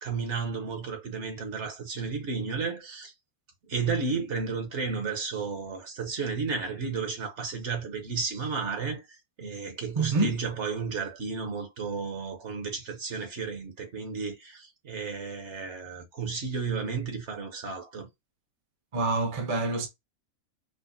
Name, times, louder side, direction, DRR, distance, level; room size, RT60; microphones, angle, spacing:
voice 1, 0.0-3.1 3.7-18.1, right 5 dB, 55° right, 1.2 m, -33 dB
voice 2, 10.0-10.4 18.9-19.9, right 3 dB, 30° right, 0.7 m, -26 dB
5.1 x 2.2 x 2.5 m
omnidirectional pair, 1.5 m